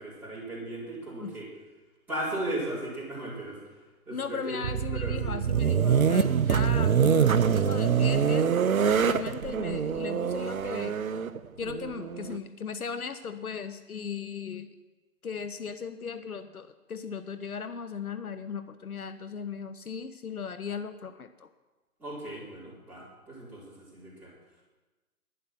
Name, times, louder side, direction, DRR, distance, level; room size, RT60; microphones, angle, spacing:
voice 1, 0.0-1.5 2.1-3.6 4.1-5.4 22.0-24.3, right 1 dB, 5° right, -11 dB, 3.9 m, -36 dB
voice 2, 4.1-8.6 8.9-11.0 11.6-14.7 15.2-21.5, left 6 dB, 70° left, 11 dB, 0.9 m, -37 dB
sound 1, 4.6-12.4, right 7 dB, 65° right, 0.7 m, -25 dB
11.0 x 10.5 x 6.0 m, 1.2 s
figure-of-eight pair, 150°, 46 cm